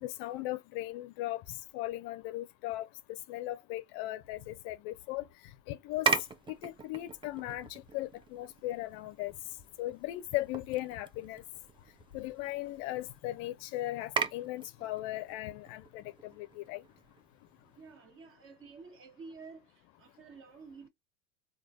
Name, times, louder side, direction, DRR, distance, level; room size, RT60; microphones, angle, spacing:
voice 1, 0.0-1.4 1.7-2.9 3.3-5.2 5.7-6.1 6.6-9.3 9.8-11.4 12.1-16.8, left 16 dB, 55° left, 0.5 m, -37 dB
sound 1, 5.9-17.9, right 6 dB, 15° right, 0.4 m, -40 dB
voice 2, 17.8-19.6 20.0-20.9, right 4 dB, 35° right, 1.3 m, -50 dB
3.1 x 2.3 x 2.4 m
hypercardioid pair, 90°, 35 cm